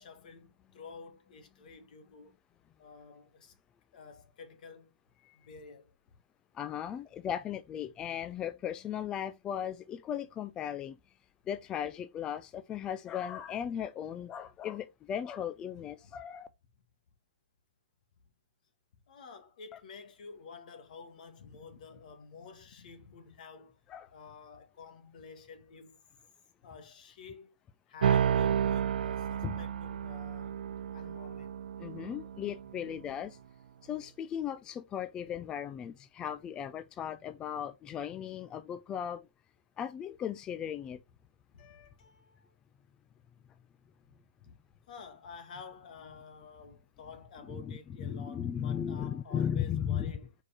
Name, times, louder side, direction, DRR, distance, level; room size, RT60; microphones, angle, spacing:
voice 1, 0.0-2.4 2.8-3.6 3.9-4.9 5.3-6.0 16.0-16.1 19.1-23.8 24.1-26.0 26.6-27.6 27.9-30.6 30.9-31.6 41.5-42.6 44.4-44.6 44.9-50.3, left 5 dB, 60° left, 1.8 m, -50 dB
voice 2, 6.5-11.0 11.5-16.5 23.9-24.1 29.4-29.6 31.8-33.4 33.8-39.3 39.8-41.0 47.5-50.1, left 9 dB, 15° left, 0.3 m, -37 dB
sound 1, 28.0-32.9, right 8 dB, 85° right, 0.4 m, -31 dB
4.9 x 4.8 x 4.3 m
hypercardioid pair, 160°, 5 cm